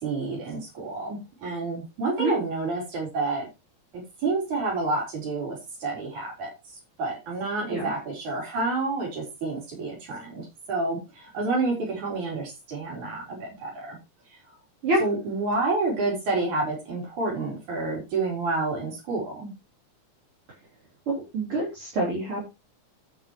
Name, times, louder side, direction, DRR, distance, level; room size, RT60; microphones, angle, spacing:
voice 1, 0.0-3.5 3.9-6.5 7.0-14.0 15.0-19.5, right 3 dB, 75° right, -2 dB, 5.4 m, -29 dB
voice 2, 21.1-22.4, right 2 dB, 45° right, -5 dB, 4.4 m, -26 dB
12.0 x 9.0 x 3.1 m, 0.25 s
omnidirectional pair, 3.5 m